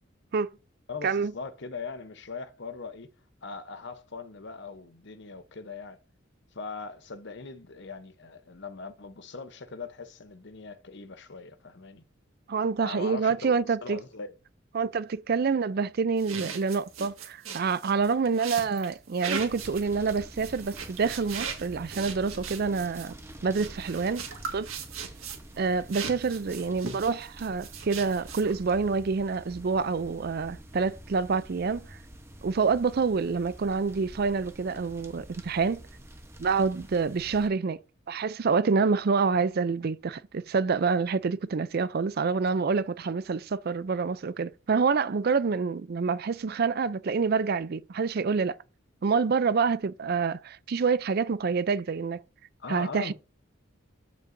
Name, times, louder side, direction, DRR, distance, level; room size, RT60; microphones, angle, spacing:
voice 1, 0.9-3.1 3.4-6.0 6.5-12.0 12.8-14.3 52.6-53.1, left 4 dB, 55° left, 0.8 m, -40 dB
voice 2, 12.5-14.0 14.7-23.1 23.4-24.2 24.5-24.7 25.6-32.0 32.4-35.8 36.4-37.8 38.1-48.6 49.0-52.2 52.7-53.1, right 5 dB, 45° right, 0.4 m, -27 dB
sound 1, 16.2-25.6 25.9-28.7, right 6 dB, 85° right, 1.7 m, -39 dB
sound 2, 19.5-37.5, right 1 dB, 10° right, 0.9 m, -47 dB
12.5 x 5.4 x 2.6 m
head